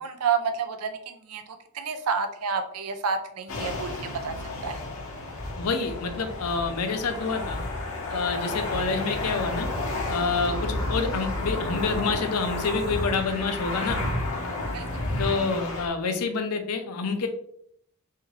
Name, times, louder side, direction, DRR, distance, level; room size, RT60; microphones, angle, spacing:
voice 1, 0.0-3.9 4.2-4.3 4.6-4.8 14.7-14.8, right 5 dB, 80° right, 7 dB, 0.5 m, -29 dB
sound 1, 3.5-15.9, left 2 dB, 60° left, 0.9 m, -31 dB
voice 2, 5.6-7.6 8.1-9.7 10.1-14.0 15.2-17.3, left 4 dB, 85° left, 7 dB, 0.6 m, -28 dB
3.5 x 3.4 x 3.1 m, 0.69 s
head